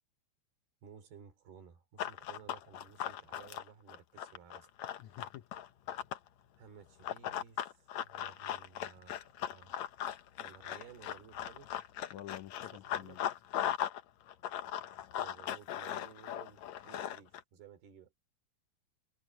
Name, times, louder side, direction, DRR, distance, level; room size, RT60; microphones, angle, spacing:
voice 1, 0.8-4.7 6.6-9.9 10.4-11.7 12.9-13.2 15.2-18.1, right 7 dB, 85° right, 5.5 m, -56 dB
Run, 2.0-6.3 7.0-14.0 14.3-17.4, left 11 dB, 65° left, 1.9 m, -38 dB
voice 2, 5.0-5.5 12.1-13.2, left 13 dB, 80° left, 1.7 m, -48 dB
omnidirectional pair, 4.4 m